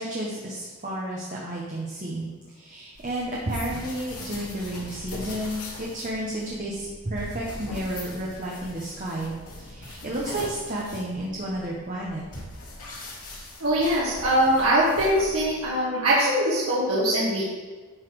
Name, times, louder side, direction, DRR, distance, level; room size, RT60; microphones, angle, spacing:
voice 1, 0.0-2.3 2.5-12.2, right 1 dB, 35° right, -4 dB, 1.1 m, -32 dB
sound 1, 2.9-15.7, left 1 dB, 90° left, 2.4 m, -41 dB
voice 2, 13.6-17.4, right 1 dB, 75° right, -7 dB, 1.6 m, -22 dB
11.0 x 4.1 x 4.8 m, 1.4 s
head